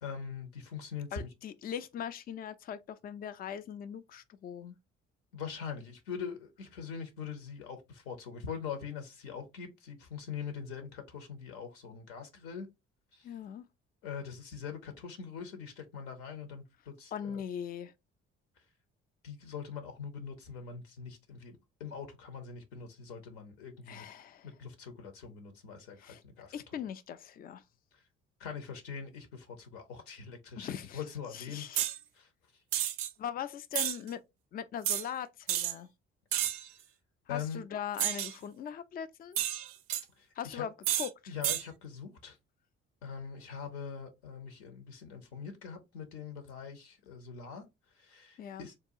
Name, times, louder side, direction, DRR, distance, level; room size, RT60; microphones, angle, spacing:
voice 1, 0.0-1.3 5.3-12.7 13.1-13.3 14.0-17.4 19.2-24.0 24.4-26.5 28.4-31.7 32.1-32.3 37.3-37.6 40.2-40.7 41.3-42.4 43.0-47.6 47.9-48.8, left 6 dB, 70° left, 0.8 m, -43 dB
voice 2, 1.1-4.7 13.2-13.6 17.1-17.9 23.9-24.5 26.0-26.2 26.5-27.6 30.6-31.0 31.3-31.8 33.2-34.2 34.5-35.9 37.3-39.5 40.4-41.3 48.4-48.7, left 9 dB, 30° left, 0.4 m, -40 dB
sound 1, 31.7-32.0 32.7-33.1 33.7-34.0 34.8-35.0 35.5-35.7 36.3-36.7 38.0-38.3 39.3-40.0 40.8-41.1 41.4-41.6, right 12 dB, 45° right, 0.4 m, -31 dB
3.7 x 2.3 x 2.7 m
figure-of-eight pair, 45°, 34 cm